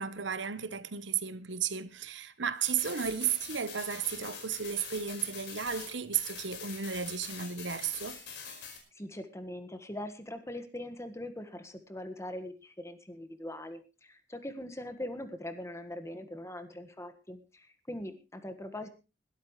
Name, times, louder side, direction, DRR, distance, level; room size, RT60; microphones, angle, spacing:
voice 1, 0.0-8.2, right 7 dB, 85° right, 1.0 m, -34 dB
sound 1, 2.6-8.8, left 6 dB, 70° left, 5.0 m, -44 dB
voice 2, 8.9-18.9, left 1 dB, 15° left, 1.6 m, -42 dB
21.0 x 12.5 x 3.2 m
head